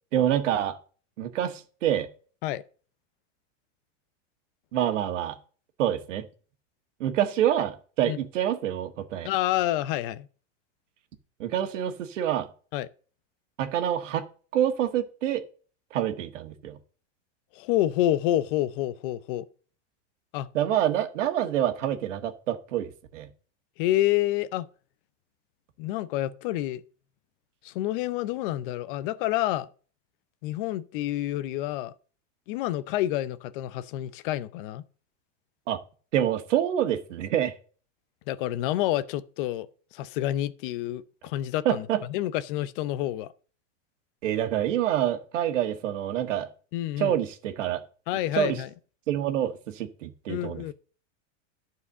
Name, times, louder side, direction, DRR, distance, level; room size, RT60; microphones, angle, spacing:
voice 1, 0.1-0.8 1.2-2.1 4.7-5.4 5.8-6.3 7.0-9.3 11.4-12.5 13.6-14.2 14.5-15.4 15.9-16.8 20.5-23.3 35.7-35.8 36.1-37.5 41.7-42.0 44.2-46.5 47.0-47.8 48.4-48.6 49.1-50.7, right 11 dB, 80° right, 1.6 m, -27 dB
voice 2, 9.2-10.3 12.7-12.9 17.5-19.5 20.3-20.5 23.8-24.7 25.8-26.8 27.6-29.7 30.4-31.9 32.5-34.8 38.3-39.7 39.9-43.3 46.7-47.1 48.1-48.7 50.3-50.7, left 14 dB, 45° left, 0.7 m, -28 dB
11.0 x 4.7 x 6.7 m
supercardioid pair, 155°, 36 cm